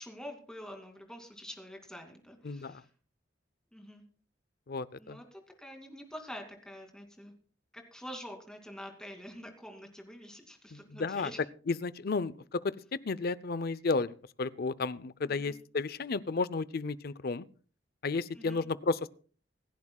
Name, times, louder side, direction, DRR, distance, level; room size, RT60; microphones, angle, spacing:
voice 1, 0.0-2.9 3.7-4.0 5.0-7.3 7.7-11.4 15.2-15.6 18.3-18.7, equal, 5° left, 3 dB, 2.6 m, -46 dB
voice 2, 2.4-2.8 4.7-5.2 10.7-11.3 11.7-12.7 13.1-17.4 18.0-19.1, left 4 dB, 55° left, 18 dB, 0.6 m, -33 dB
26.0 x 11.0 x 2.3 m, 0.40 s
head